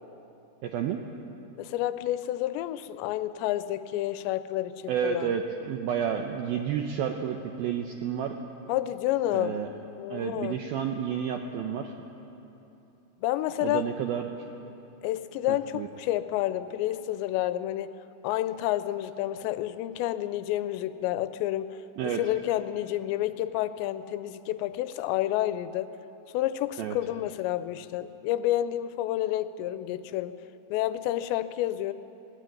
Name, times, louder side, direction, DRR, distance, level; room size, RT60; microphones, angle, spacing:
voice 1, 0.6-1.0 4.9-8.4 9.3-9.7 10.1-11.9 13.6-14.3 15.5-15.9 22.0-22.2 26.8-27.0, right 8 dB, 90° right, 4 dB, 2.1 m, -30 dB
voice 2, 1.6-5.3 8.7-9.6 10.0-10.6 13.2-13.9 15.0-17.9 18.2-21.8 22.0-25.9 26.3-30.3 30.7-31.9, left 14 dB, 80° left, 13 dB, 2.7 m, -29 dB
21.0 x 15.5 x 9.2 m, 2.9 s
omnidirectional pair, 5.4 m